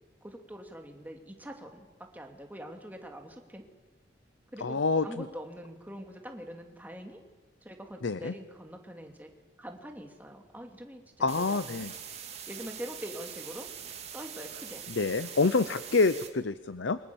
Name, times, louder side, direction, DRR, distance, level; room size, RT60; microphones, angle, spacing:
voice 1, 0.2-1.8 2.1-3.6 4.5-7.2 7.6-9.3 9.6-11.8 12.5-13.7 14.1-14.9, equal, 10° right, 3 dB, 2.7 m, -44 dB
voice 2, 4.6-5.2 8.0-8.3 11.2-11.9 15.0-17.0, left 3 dB, 75° left, 14 dB, 0.8 m, -27 dB
sound 1, 11.3-16.3, right 8 dB, 35° right, 2.7 m, -43 dB
29.0 x 25.0 x 7.1 m, 1.3 s
head